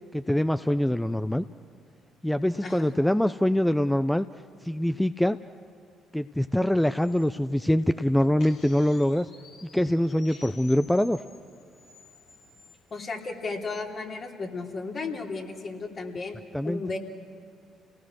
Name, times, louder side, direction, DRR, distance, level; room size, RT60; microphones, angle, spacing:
voice 1, 0.1-1.4 2.2-4.3 4.6-5.4 6.1-9.3 9.6-11.2 16.5-16.8, left 1 dB, 5° left, 12 dB, 0.6 m, -24 dB
sound 1, 6.8-12.8, left 4 dB, 70° left, 3.5 m, -53 dB
voice 2, 12.9-16.4 16.6-17.0, left 3 dB, 50° left, 0 dB, 3.3 m, -34 dB
30.0 x 18.5 x 6.4 m, 2.3 s
hypercardioid pair, 50°, 0 cm